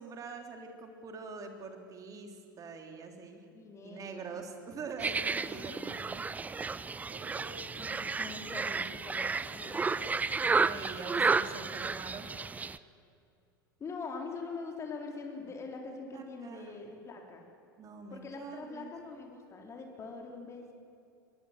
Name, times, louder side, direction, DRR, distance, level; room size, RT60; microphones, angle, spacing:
voice 1, 0.0-3.5 3.8-6.2 7.1-7.7 10.5-12.3 16.1-16.8 17.8-18.9, right 4 dB, 30° right, 4 dB, 3.5 m, -44 dB
voice 2, 3.5-4.4 5.2-5.8 7.8-10.1 13.8-17.4 18.1-20.7, left 4 dB, 25° left, 2 dB, 3.9 m, -44 dB
sound 1, 5.0-12.8, right 4 dB, 15° right, 0.6 m, -32 dB
23.5 x 22.0 x 7.4 m, 2.5 s
figure-of-eight pair, 85°, 11 cm